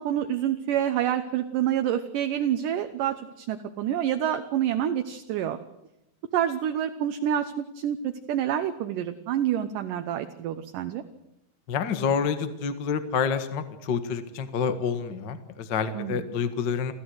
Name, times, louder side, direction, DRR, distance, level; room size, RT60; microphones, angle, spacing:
voice 1, 0.0-5.6 6.3-11.0 15.9-16.2, right 10 dB, 70° right, 7 dB, 2.3 m, -27 dB
voice 2, 11.7-16.9, left 6 dB, 50° left, 10 dB, 1.3 m, -28 dB
28.5 x 14.0 x 8.0 m, 0.87 s
omnidirectional pair, 4.4 m